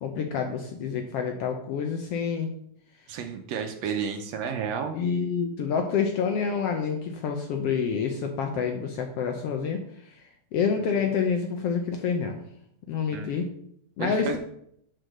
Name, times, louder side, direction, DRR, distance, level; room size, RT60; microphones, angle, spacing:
voice 1, 0.0-2.5 4.9-10.2 10.5-12.4 12.9-13.5 14.0-14.4, left 6 dB, 70° left, 4 dB, 1.5 m, -28 dB
voice 2, 3.1-4.9 10.8-11.0 13.1-13.5 14.0-14.4, right 6 dB, 70° right, 5 dB, 1.8 m, -32 dB
6.5 x 4.6 x 6.4 m, 0.71 s
omnidirectional pair, 3.4 m